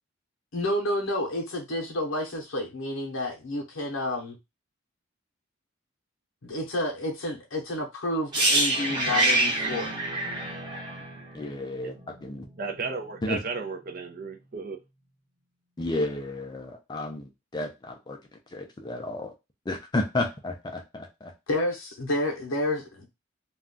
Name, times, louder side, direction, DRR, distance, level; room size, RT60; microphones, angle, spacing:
voice 1, 0.5-4.3 6.4-10.0 21.5-23.1, left 1 dB, 75° left, 0.7 m, -30 dB
sound 1, 8.3-12.2 12.4-12.6, right 1 dB, 25° right, 0.9 m, -26 dB
voice 2, 11.3-12.4 13.2-13.4 15.8-18.2 18.5-19.3 19.7-21.3, left 2 dB, 20° left, 0.4 m, -32 dB
voice 3, 12.6-14.8, right 4 dB, 45° right, 0.5 m, -34 dB
2.3 x 2.2 x 3.6 m
head